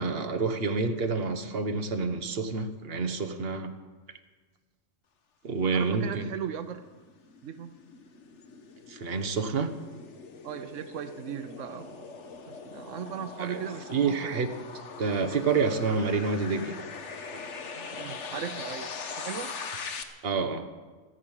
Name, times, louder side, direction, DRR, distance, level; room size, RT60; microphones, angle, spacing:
voice 1, 0.0-3.7 5.4-6.3 8.9-9.7 13.4-13.6 13.9-14.5 15.0-16.8 20.2-20.7, right 4 dB, 55° right, 8 dB, 1.3 m, -28 dB
voice 2, 5.7-6.9 7.4-7.7 10.4-12.2 12.5-14.4 17.7-19.5, right 8 dB, 85° right, 10 dB, 1.1 m, -38 dB
sound 1, 6.8-20.0, left 5 dB, 70° left, 1.5 m, -41 dB
14.0 x 10.5 x 8.9 m, 1.4 s
omnidirectional pair, 1.3 m